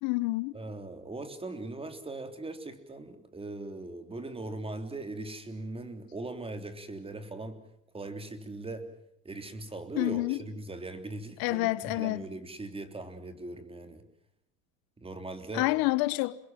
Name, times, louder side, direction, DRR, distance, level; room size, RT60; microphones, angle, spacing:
voice 1, 0.0-0.5 10.0-10.4 11.4-12.2 15.5-16.4, left 21 dB, 60° left, 1.1 m, -28 dB
voice 2, 0.5-7.6 7.9-8.9 9.3-14.0 15.0-15.7, right 2 dB, 15° right, 3.4 m, -40 dB
28.0 x 22.0 x 7.5 m
supercardioid pair, 115°, 40 cm